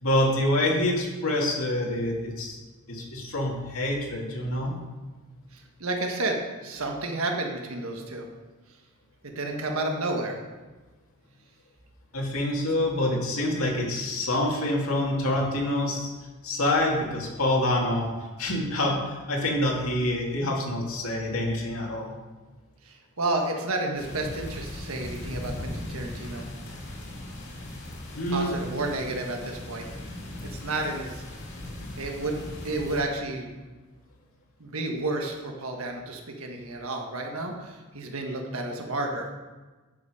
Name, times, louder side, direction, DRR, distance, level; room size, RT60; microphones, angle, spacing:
voice 1, 0.0-2.6 2.9-4.7 12.1-16.1 16.4-18.1 18.4-22.1 28.1-28.5, left 1 dB, 75° left, -2 dB, 2.3 m, -26 dB
voice 2, 5.5-8.3 9.2-10.4 22.8-26.5 28.3-29.8 30.4-31.2 32.0-32.4 32.6-33.5 34.6-39.3, right 2 dB, 75° right, 2 dB, 1.5 m, -31 dB
sound 1, 23.9-33.0, left 1 dB, 55° left, 2.6 m, -38 dB
10.5 x 7.1 x 5.0 m, 1.2 s
head